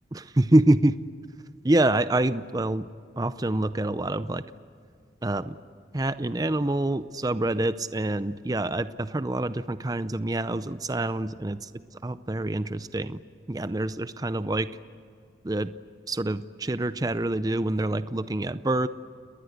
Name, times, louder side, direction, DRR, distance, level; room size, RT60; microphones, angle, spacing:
voice 1, 0.1-1.0 1.6-2.9 3.2-4.4 5.2-5.6 5.9-11.7 12.0-13.2 13.5-14.7 15.4-15.7 16.1-18.9, right 1 dB, 20° right, 13 dB, 0.5 m, -26 dB
29.5 x 20.0 x 8.1 m, 2.3 s
head